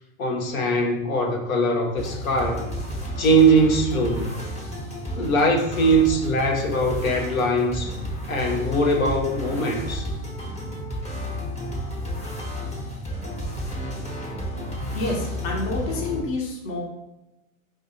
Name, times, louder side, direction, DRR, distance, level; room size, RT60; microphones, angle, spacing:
voice 1, 0.2-2.7 3.2-4.3 5.2-7.9 8.3-10.1, right 2 dB, 80° left, 2 dB, 1.0 m, -21 dB
sound 1, 2.0-16.2, equal, 15° left, 0.9 m, -32 dB
voice 2, 14.9-16.8, left 2 dB, 45° left, -1 dB, 1.0 m, -28 dB
4.7 x 2.6 x 2.8 m, 0.96 s
hypercardioid pair, 125°, 41 cm